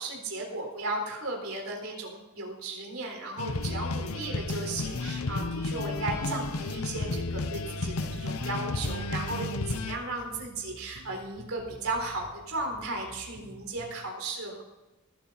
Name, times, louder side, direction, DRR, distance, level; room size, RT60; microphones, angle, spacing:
voice 1, 0.0-14.6, right 2 dB, 70° right, 1 dB, 4.2 m, -35 dB
sound 1, 3.4-10.0, left 3 dB, 75° left, 0.9 m, -32 dB
sound 2, 4.8-5.2 5.6-6.0 6.4-6.8 7.2-7.7 8.0-8.5 8.8-9.3, equal, 15° left, 3.5 m, -48 dB
sound 3, 9.2-13.9, right 1 dB, 85° right, 2.2 m, -50 dB
20.0 x 8.5 x 4.0 m, 1.1 s
head